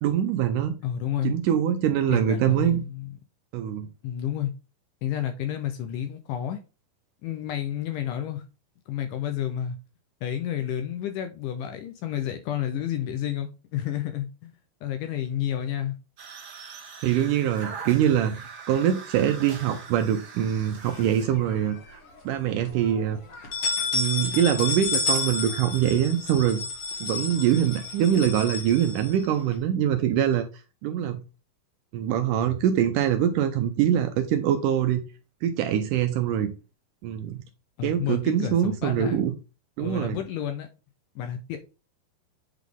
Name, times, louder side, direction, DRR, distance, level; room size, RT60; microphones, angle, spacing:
voice 1, 0.0-0.7 1.2-2.8 3.5-3.9 17.0-22.0 22.3-23.2 23.9-26.6 27.0-30.5 30.8-31.2 31.9-35.0 35.4-36.5 37.0-37.4 37.8-39.4 39.8-40.2, right 10 dB, 80° right, 1.9 m, -24 dB
voice 2, 0.8-1.3 2.1-3.1 4.0-4.5 5.0-6.6 7.2-8.4 8.9-9.8 10.2-14.5 14.8-16.0 37.8-39.3 39.8-40.7 41.2-41.6, left 10 dB, 85° left, 1.9 m, -30 dB
sound 1, 16.2-21.3 21.8-22.2 22.6-26.5, right 5 dB, 55° right, 1.9 m, -44 dB
sound 2, 20.8-21.8 22.2-22.3 22.6-22.7 23.3-29.5, left 3 dB, 55° left, 1.8 m, -31 dB
8.2 x 3.9 x 3.5 m
omnidirectional pair, 4.2 m